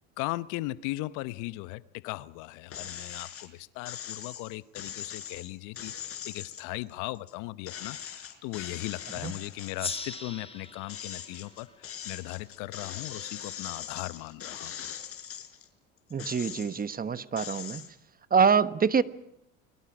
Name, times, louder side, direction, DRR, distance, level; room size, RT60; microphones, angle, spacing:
voice 1, 0.2-14.9, left 19 dB, 70° left, 17 dB, 1.0 m, -38 dB
sound 1, 2.7-3.5 3.9-7.3 7.7-10.2 10.6-15.7 16.1-16.9 17.4-17.9, left 9 dB, 45° left, 4.3 m, -41 dB
Gong, 9.8-12.9, left 4 dB, 20° left, 2.6 m, -41 dB
voice 2, 16.1-17.8 18.3-19.0, right 6 dB, 30° right, 14 dB, 1.3 m, -25 dB
29.5 x 22.5 x 6.1 m, 0.80 s
supercardioid pair, 85°, 31 cm